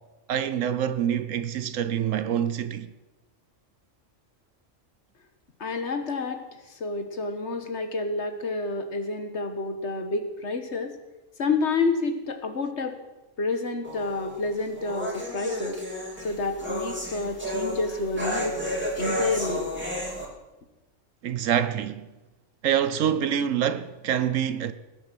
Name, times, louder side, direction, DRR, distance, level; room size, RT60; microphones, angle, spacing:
voice 1, 0.3-2.9 21.2-22.0 22.6-24.7, right 9 dB, 80° right, 1.1 m, -26 dB
voice 2, 5.6-6.4 6.8-10.9 11.4-13.0 13.4-15.8 16.2-18.5 19.0-19.7, left 3 dB, 60° left, 1.6 m, -29 dB
sound 1, 13.8-20.3, equal, 10° right, 2.7 m, -32 dB
19.5 x 8.7 x 6.1 m
omnidirectional pair, 1.3 m